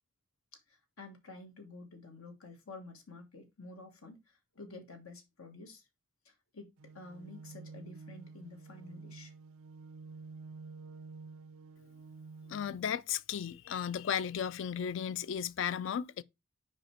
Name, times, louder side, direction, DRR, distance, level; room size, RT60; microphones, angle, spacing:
voice 1, 0.5-5.9 6.2-6.7 6.9-9.3, left 3 dB, 85° left, 1.4 m, -50 dB
sound 1, 6.8-12.8, right 4 dB, 70° right, 0.4 m, -50 dB
voice 2, 12.5-16.2, left 8 dB, 65° left, 0.3 m, -35 dB
5.0 x 5.0 x 4.4 m
head